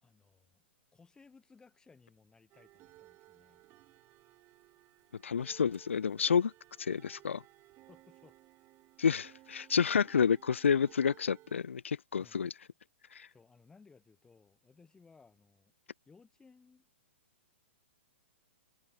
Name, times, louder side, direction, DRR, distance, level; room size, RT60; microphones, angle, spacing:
voice 1, 0.0-0.6 0.9-3.6 7.9-8.4 12.2-12.4 13.3-15.7 16.1-16.9, left 4 dB, 10° left, 2.3 m, -61 dB
sound 1, 2.5-11.6, right 17 dB, 30° right, 1.4 m, -60 dB
voice 2, 5.2-6.5 6.8-7.4 9.0-12.5 13.1-13.3, left 6 dB, 85° left, 0.4 m, -29 dB
hypercardioid pair, 120°, 7 cm